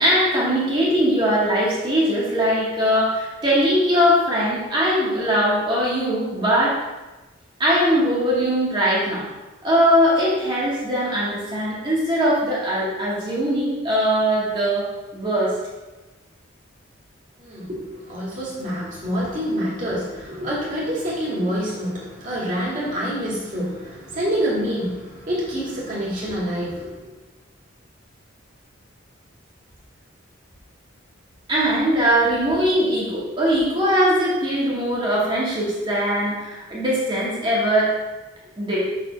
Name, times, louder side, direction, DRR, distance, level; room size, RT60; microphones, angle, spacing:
voice 1, 0.0-6.8 7.6-9.3 9.6-14.9 15.1-15.5 31.5-38.0 38.6-38.8, equal, 25° right, -7 dB, 1.8 m, -20 dB
voice 2, 17.4-26.9, equal, 40° right, -6 dB, 2.5 m, -27 dB
6.9 x 4.1 x 5.1 m, 1.1 s
head